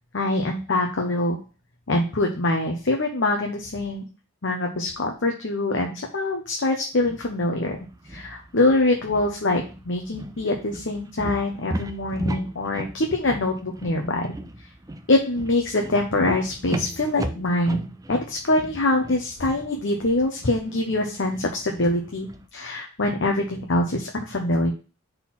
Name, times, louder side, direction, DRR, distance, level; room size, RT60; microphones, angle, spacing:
voice 1, 0.1-1.4 1.9-4.1 4.4-7.8 8.1-14.3 15.1-24.7, left 2 dB, 60° left, 2 dB, 0.9 m, -24 dB
sound 1, 6.9-22.5, right 1 dB, 15° right, 0.5 m, -37 dB
4.4 x 4.1 x 5.7 m, 0.33 s
head